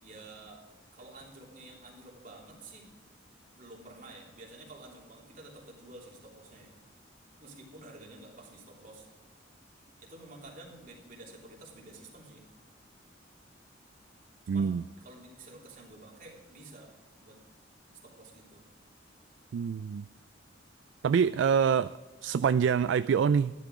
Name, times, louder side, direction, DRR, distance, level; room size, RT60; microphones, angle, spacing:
voice 1, 0.0-0.6 0.9-2.9 3.5-6.7 7.4-9.1 10.0-12.4 14.4-16.9 17.2-17.4 17.9-18.6, right 2 dB, 45° right, -2 dB, 3.4 m, -50 dB
voice 2, 14.5-14.8 19.5-20.0 21.0-21.9 22.2-23.5, right 7 dB, 70° right, 15 dB, 0.3 m, -25 dB
13.5 x 12.0 x 4.9 m, 1.2 s
head